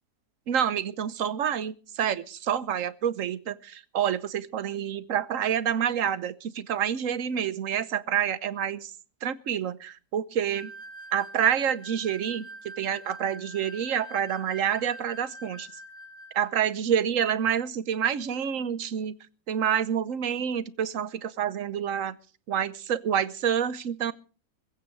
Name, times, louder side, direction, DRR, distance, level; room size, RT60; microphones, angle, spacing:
voice 1, 0.5-8.9 9.2-10.7 11.1-15.7 16.3-19.2 19.5-22.2 22.5-24.1, right 8 dB, 60° right, 16 dB, 1.2 m, -28 dB
sound 1, 10.5-16.6, equal, 75° left, 3.3 m, -45 dB
22.0 x 15.0 x 3.2 m, 0.38 s
omnidirectional pair, 1.7 m